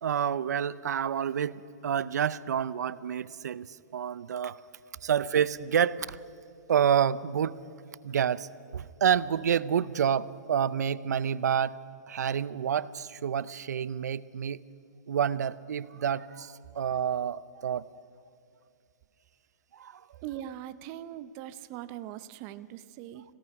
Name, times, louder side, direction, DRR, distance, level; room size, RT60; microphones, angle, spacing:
voice 1, 0.0-4.6 5.0-6.2 6.7-7.6 8.0-11.8 12.1-14.6 15.1-17.9 19.7-20.0, right 8 dB, 80° right, 0.6 m, -28 dB
voice 2, 20.2-23.2, right 12 dB, 25° right, 0.6 m, -41 dB
26.5 x 17.0 x 5.9 m
hypercardioid pair, 160°, 9 cm